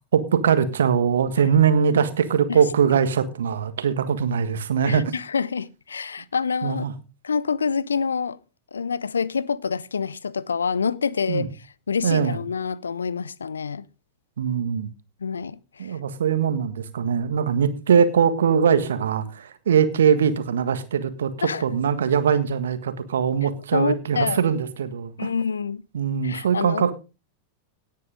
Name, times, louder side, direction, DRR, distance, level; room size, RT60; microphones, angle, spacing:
voice 1, 0.1-5.0 6.6-6.9 11.3-11.5 12.0-12.4 14.4-14.9 15.8-25.3 25.9-26.9, right 7 dB, 65° right, 1.6 m, -21 dB
voice 2, 4.9-6.8 7.2-8.4 8.7-11.5 11.9-13.8 15.2-16.0 21.4-21.6 23.7-24.4 25.2-25.8 26.2-26.9, left 5 dB, 75° left, 0.6 m, -27 dB
18.0 x 8.6 x 3.6 m
figure-of-eight pair, 90°, 0 cm